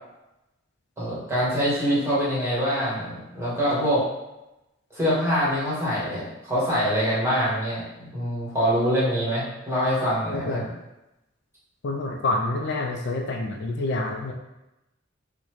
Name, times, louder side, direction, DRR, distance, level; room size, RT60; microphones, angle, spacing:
voice 1, 1.0-4.0 4.9-10.7, equal, 15° right, -8 dB, 1.2 m, -24 dB
voice 2, 10.3-10.7 11.8-14.3, left 2 dB, 55° left, 2 dB, 0.4 m, -27 dB
3.9 x 2.1 x 3.0 m, 0.94 s
head